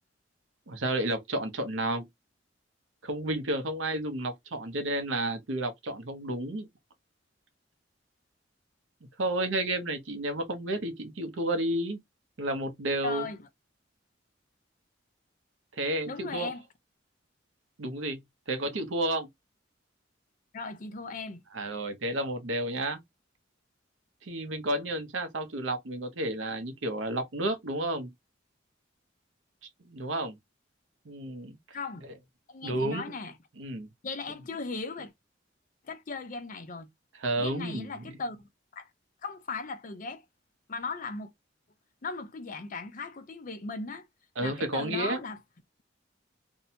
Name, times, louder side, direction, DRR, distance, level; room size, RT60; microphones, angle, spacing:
voice 1, 0.7-2.1 3.0-6.7 9.2-12.0 12.4-13.3 15.8-16.5 17.8-18.2 18.5-19.3 21.5-23.0 24.2-28.1 29.9-30.4 31.1-31.6 32.6-33.0 33.6-33.9 37.2-38.1 44.4-45.2, right 1 dB, 85° right, 0.7 m, -31 dB
voice 2, 13.0-13.5 16.1-16.6 20.5-21.4 31.7-32.1 32.5-33.3 34.0-35.1 35.8-36.9 37.4-38.4 38.8-38.9 39.2-40.2 40.7-41.3 42.0-44.1 44.4-45.4, left 3 dB, 45° left, 0.5 m, -37 dB
2.7 x 2.2 x 2.7 m
head